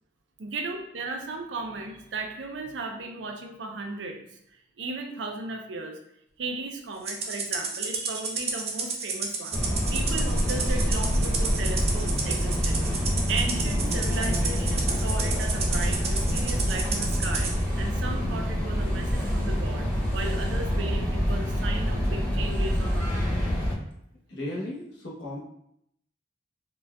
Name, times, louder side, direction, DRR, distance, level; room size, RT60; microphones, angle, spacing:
voice 1, 0.4-4.2 4.8-6.0 6.4-9.6 9.9-13.0 13.3-19.9 20.1-23.1, right 3 dB, 90° right, 4 dB, 0.5 m, -36 dB
Rattle (instrument), 7.1-17.5, right 4 dB, 35° right, 0.5 m, -32 dB
sound 1, 9.5-23.8, equal, 10° left, 0.9 m, -26 dB
voice 2, 24.3-25.4, left 1 dB, 80° left, -4 dB, 0.9 m, -35 dB
3.9 x 2.3 x 2.2 m, 0.75 s
head